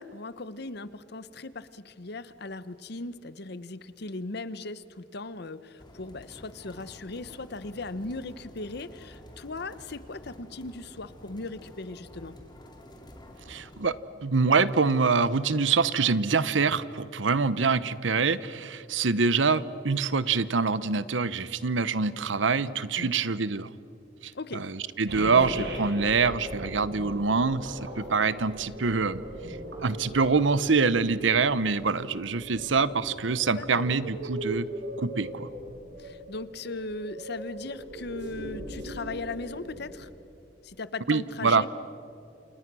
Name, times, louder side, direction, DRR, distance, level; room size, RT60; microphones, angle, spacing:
voice 1, 0.0-12.4 23.0-23.2 24.3-24.6 33.5-33.8 36.0-40.1 40.6-41.7, left 3 dB, 60° left, 15 dB, 1.0 m, -38 dB
sound 1, 5.8-13.9, equal, 25° left, 2.6 m, -49 dB
voice 2, 13.5-13.9 14.2-23.7 24.2-29.2 29.5-29.6 29.8-34.7 35.0-35.5 41.1-41.6, right 4 dB, 85° right, 16 dB, 0.9 m, -25 dB
sound 2, 25.1-40.1, right 1 dB, 65° right, 5.2 m, -39 dB
28.5 x 28.5 x 6.2 m, 2.8 s
head